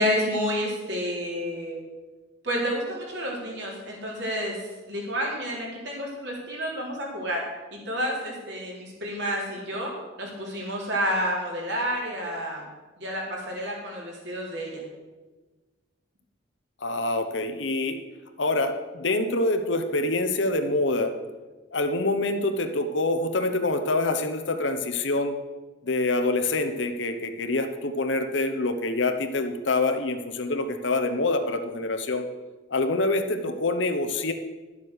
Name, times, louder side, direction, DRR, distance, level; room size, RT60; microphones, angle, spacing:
voice 1, 0.0-1.8 2.4-4.6 4.9-7.4 7.7-9.9 10.2-12.6 13.0-14.8, equal, 60° right, -3 dB, 3.5 m, -29 dB
voice 2, 16.8-18.0 18.4-21.1 21.7-25.4 25.8-32.3 32.7-34.3, left 2 dB, 70° left, 7 dB, 1.0 m, -26 dB
11.5 x 7.4 x 6.5 m, 1.2 s
head